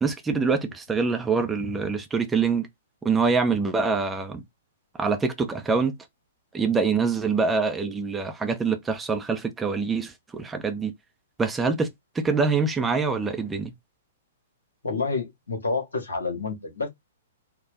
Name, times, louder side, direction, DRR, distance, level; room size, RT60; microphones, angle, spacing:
voice 1, 0.0-2.7 3.0-4.4 5.0-5.9 6.5-10.9 11.4-11.9 12.1-13.7, right 4 dB, 10° right, 0.8 m, -25 dB
voice 2, 14.8-16.9, left 4 dB, 70° left, 1.8 m, -28 dB
4.2 x 2.4 x 4.7 m
figure-of-eight pair, 110°, 0 cm